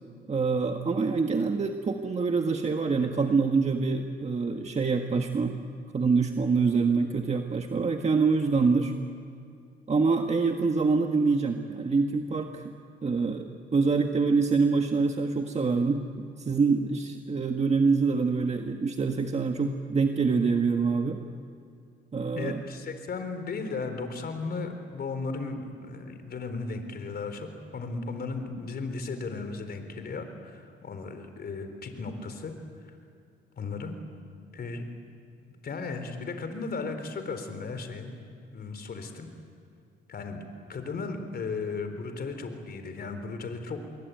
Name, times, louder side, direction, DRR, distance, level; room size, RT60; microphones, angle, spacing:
voice 1, 0.3-5.5 5.9-8.9 9.9-12.7 13.0-21.2 22.1-22.6, right 4 dB, 35° right, 4 dB, 1.6 m, -25 dB
voice 2, 22.3-32.5 33.6-34.0 34.5-34.8 35.6-38.1 38.5-39.3 40.1-40.4 40.7-43.8, left 4 dB, 50° left, 7 dB, 3.9 m, -35 dB
26.5 x 23.0 x 9.4 m, 2.4 s
cardioid pair, 90°, 20 cm